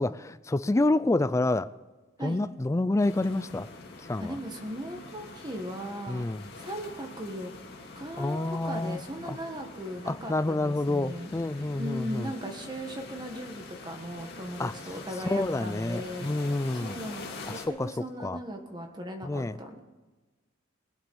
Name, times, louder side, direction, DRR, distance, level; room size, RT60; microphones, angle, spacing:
voice 1, 0.0-1.7 2.2-3.7 4.1-4.4 6.1-6.4 8.2-9.0 9.3-9.4 10.1-12.3 14.6-14.7 15.2-17.0 17.5-17.9 18.2-18.4 19.2-19.8, left 2 dB, 15° left, 14 dB, 0.3 m, -28 dB
sound 1, 3.0-17.7, left 3 dB, 55° left, 2.2 m, -45 dB
voice 2, 4.2-6.3 6.6-7.5 7.9-11.3 11.6-16.3 16.7-19.8, equal, 20° right, 3 dB, 1.4 m, -38 dB
20.5 x 7.2 x 5.4 m, 1.2 s
head